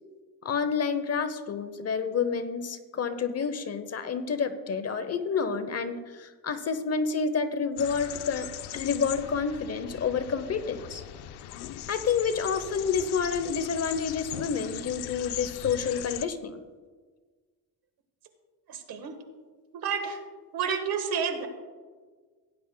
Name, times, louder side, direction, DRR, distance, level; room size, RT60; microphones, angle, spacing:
voice 1, 0.4-8.5 8.7-11.0 11.9-16.6, left 6 dB, 40° left, 11 dB, 0.8 m, -29 dB
sound 1, 7.8-16.3, left 12 dB, 75° left, 0.7 m, -39 dB
voice 2, 18.7-19.1 19.7-20.2 20.5-21.5, right 6 dB, 65° right, 7 dB, 1.5 m, -30 dB
17.0 x 10.0 x 2.2 m, 1.4 s
cardioid pair, 115°, 40 cm